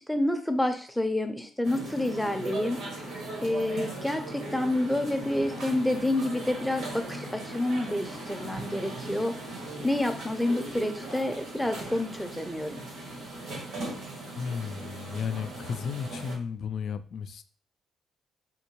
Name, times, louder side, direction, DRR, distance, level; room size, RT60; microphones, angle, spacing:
voice 1, 0.0-2.8 3.4-9.3 9.8-12.8, left 1 dB, 5° left, 6 dB, 0.6 m, -28 dB
sound 1, 1.6-16.3, right 1 dB, 85° right, 1.7 m, -39 dB
voice 2, 14.4-17.4, left 6 dB, 60° left, 12 dB, 0.3 m, -34 dB
3.6 x 2.6 x 2.9 m, 0.43 s
cardioid pair, 90°, 0 cm